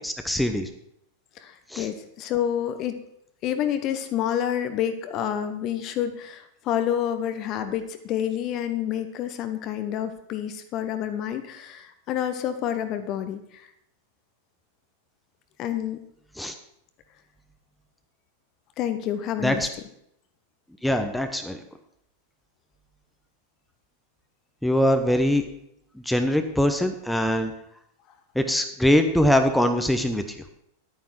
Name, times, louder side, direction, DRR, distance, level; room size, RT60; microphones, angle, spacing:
voice 1, 0.0-0.7 1.7-1.9 16.4-16.5 19.4-19.7 20.8-21.6 24.6-25.4 26.0-27.5 28.3-30.4, equal, 5° left, 6 dB, 1.0 m, -22 dB
voice 2, 1.4-3.0 3.4-13.7 15.6-16.0 18.8-19.7, left 10 dB, 35° left, 9 dB, 1.0 m, -28 dB
11.0 x 9.3 x 4.6 m, 0.74 s
figure-of-eight pair, 90°, 0 cm